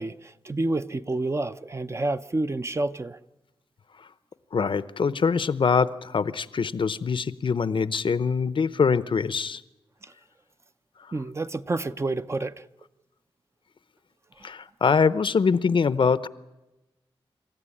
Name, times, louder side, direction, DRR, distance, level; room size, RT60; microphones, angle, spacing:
voice 1, 0.0-3.2 10.0-10.1 11.1-12.7 14.4-14.5, right 2 dB, 30° right, 0.7 m, -29 dB
voice 2, 4.5-9.6 14.4-16.3, left 5 dB, 60° left, 0.7 m, -23 dB
26.5 x 14.0 x 9.8 m
wide cardioid pair, 95°, 10 cm